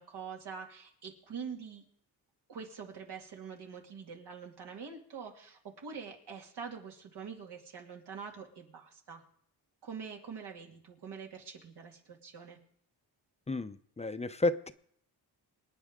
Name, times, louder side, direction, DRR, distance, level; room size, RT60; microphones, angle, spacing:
voice 1, 0.0-1.8 2.5-9.2 9.8-12.6, right 6 dB, 75° right, 1 dB, 2.6 m, -45 dB
voice 2, 13.5-14.7, left 2 dB, 15° left, 11 dB, 0.6 m, -32 dB
25.5 x 9.5 x 3.7 m, 0.66 s
cardioid pair, 100°, 41 cm